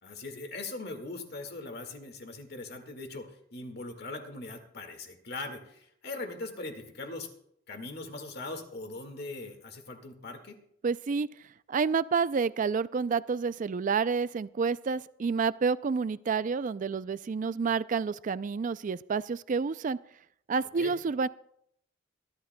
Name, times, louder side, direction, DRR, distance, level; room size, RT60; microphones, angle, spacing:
voice 1, 0.0-7.3 7.7-10.6 20.8-21.0, left 2 dB, 55° left, 5 dB, 1.8 m, -40 dB
voice 2, 10.8-11.3 11.7-20.0 20.5-21.3, right 5 dB, 40° right, 16 dB, 0.4 m, -29 dB
24.5 x 12.0 x 2.2 m, 0.72 s
head